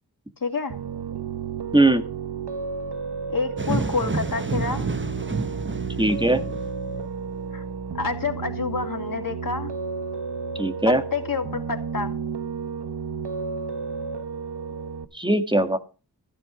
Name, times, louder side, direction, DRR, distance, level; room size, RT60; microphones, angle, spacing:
voice 1, 0.4-0.8 3.3-4.8 7.5-7.6 7.9-9.7 10.8-12.1, left 4 dB, 55° left, 4 dB, 2.7 m, -28 dB
Piano, 0.7-15.0, right 5 dB, 80° right, 1.1 m, -32 dB
sound 1, 3.6-7.1, right 3 dB, 30° right, 1.1 m, -30 dB
voice 2, 6.0-6.4 10.6-11.0 15.1-15.8, right 2 dB, 10° right, 8 dB, 1.7 m, -19 dB
14.0 x 9.3 x 4.9 m, 0.34 s
wide cardioid pair, 70°, 40 cm